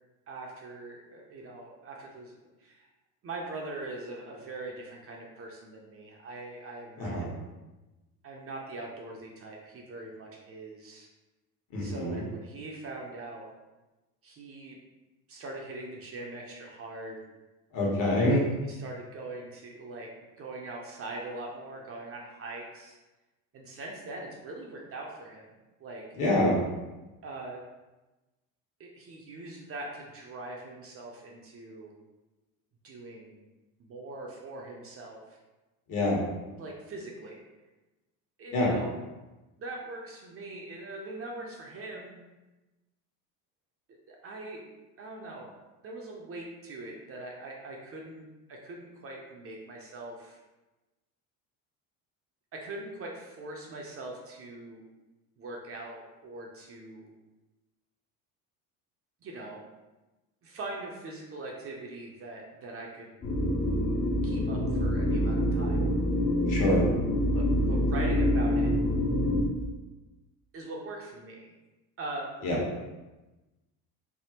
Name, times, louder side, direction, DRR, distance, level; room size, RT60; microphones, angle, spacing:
voice 1, 0.3-2.3 2.6-2.9 3.2-7.3 8.2-11.1 11.8-13.5 14.2-14.8 15.3-17.2 18.2-18.3 18.7-20.1 20.4-23.0 23.5-25.4 25.8-26.1 27.2-27.6 28.8-31.9 32.8-33.4 33.8-35.4 36.6-37.4 38.4-38.9 39.6-42.2 43.9-44.7 45.0-45.5 45.8-50.4 52.5-54.8 55.4-57.1 59.2-59.6 60.4-63.1 64.2-65.9 67.3-68.7 70.5-71.5 72.0-72.3, right 2 dB, 35° right, -1 dB, 0.5 m, -42 dB
voice 2, 7.0-7.3 11.7-12.2 17.7-18.4 26.1-26.6 35.9-36.2 38.5-38.7 66.5-66.9 72.4-72.6, left 1 dB, 50° left, -4 dB, 1.2 m, -26 dB
sound 1, 63.2-69.4, equal, 25° left, 0.5 m, -26 dB
3.4 x 2.0 x 2.8 m, 1.1 s
supercardioid pair, 100°, 41 cm